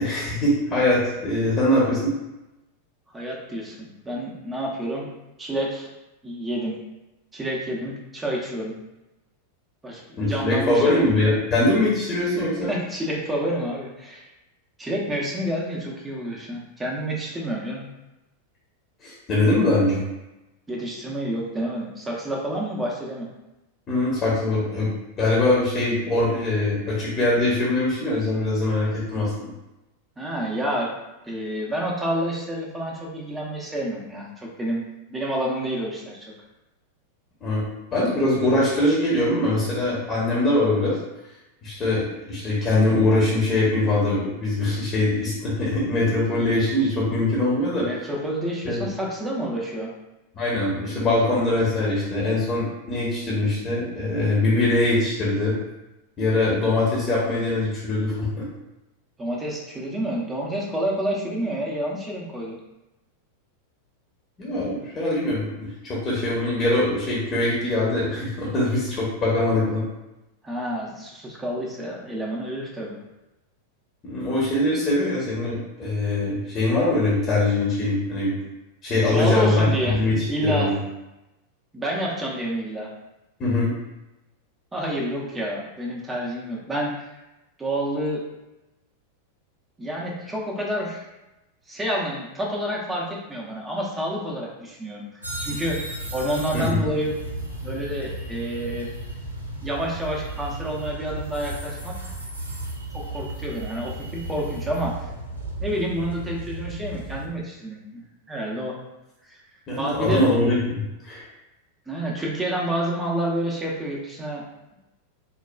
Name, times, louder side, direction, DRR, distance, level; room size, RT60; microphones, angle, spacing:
voice 1, 0.0-2.1 10.2-12.7 19.0-20.1 23.9-24.9 25.2-29.5 37.4-37.7 37.9-41.0 41.6-47.9 48.6-48.8 50.3-55.6 56.2-58.5 64.4-69.8 74.0-78.3 78.8-80.8 83.4-83.7 96.5-96.8 109.7-111.2, left 2 dB, 25° left, -6 dB, 0.9 m, -22 dB
voice 2, 3.1-5.1 5.4-5.9 6.2-6.8 7.3-8.8 9.8-11.0 12.7-14.2 14.8-17.9 20.7-23.3 30.2-30.9 31.2-34.8 35.1-36.2 47.8-49.9 59.2-62.6 70.4-73.0 79.1-80.0 80.3-80.7 81.7-82.9 84.7-87.2 87.6-88.2 89.8-91.0 91.7-97.1 97.6-98.9 99.6-101.9 102.9-104.9 105.6-108.7 109.3-109.4 109.8-110.2 111.9-114.4, right 1 dB, 10° right, -3 dB, 0.7 m, -29 dB
sound 1, 95.2-107.3, right 1 dB, 85° right, 0.5 m, -34 dB
3.8 x 2.2 x 2.3 m, 0.98 s
figure-of-eight pair, 90°, 0 cm